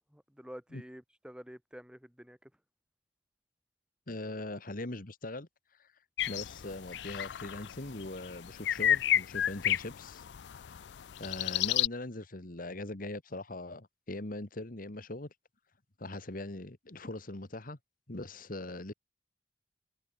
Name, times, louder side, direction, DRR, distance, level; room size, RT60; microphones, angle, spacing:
voice 1, 0.0-2.5, equal, 5° right, 2.7 m, -49 dB
voice 2, 4.1-5.9 6.3-10.8 11.2-15.3 16.0-17.8 18.1-18.9, left 2 dB, 50° left, 1.8 m, -41 dB
sound 1, 6.2-11.9, left 11 dB, 75° left, 0.4 m, -32 dB
head